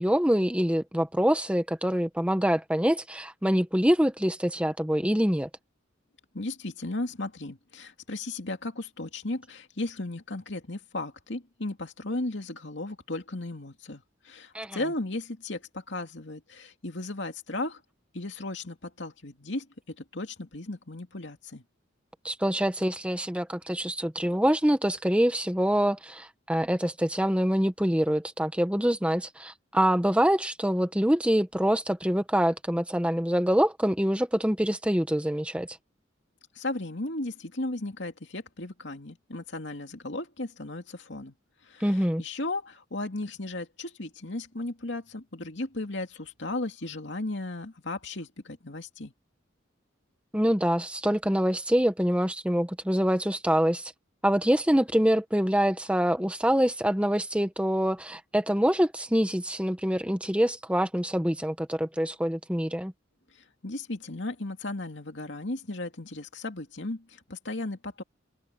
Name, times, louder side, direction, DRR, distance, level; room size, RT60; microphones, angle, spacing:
voice 1, 0.0-5.5 14.5-14.8 22.2-35.7 41.8-42.2 50.3-53.9 54.2-62.9, equal, 5° right, 1.3 m, -25 dB
voice 2, 6.3-17.8 18.1-21.6 36.5-41.3 41.6-49.1 63.3-68.0, left 2 dB, 65° left, 2.7 m, -35 dB
open air
head